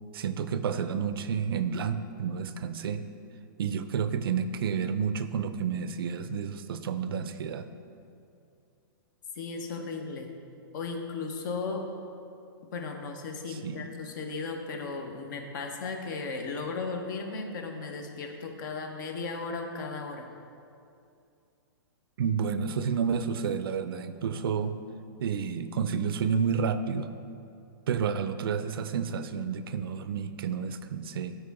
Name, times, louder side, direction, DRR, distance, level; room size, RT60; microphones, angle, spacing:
voice 1, 0.1-3.0 3.6-7.7 13.5-13.9 22.2-24.8 25.2-27.1 27.9-31.4, right 6 dB, 75° right, 11 dB, 0.5 m, -30 dB
voice 2, 9.4-10.3 10.7-11.9 12.7-20.3, left 4 dB, 55° left, 4 dB, 1.0 m, -36 dB
13.0 x 4.5 x 3.6 m, 2.5 s
hypercardioid pair, 150°, 12 cm